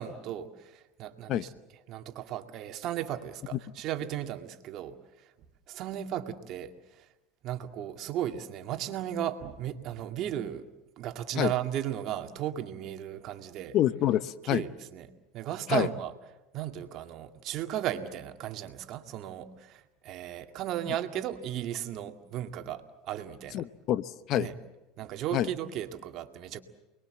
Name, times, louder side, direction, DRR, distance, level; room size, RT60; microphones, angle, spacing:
voice 1, 0.0-1.5 1.9-5.0 5.2-5.3 5.7-7.1 7.4-10.7 11.0-13.8 14.4-16.1 16.5-23.7 24.4-24.5 25.0-26.6, right 11 dB, 55° right, 6 dB, 2.1 m, -35 dB
voice 2, 13.7-14.6 15.7-15.9 23.5-24.5 25.3-25.5, left 12 dB, 50° left, 16 dB, 0.9 m, -27 dB
29.5 x 21.5 x 7.8 m, 1.0 s
hypercardioid pair, 90°, 0 cm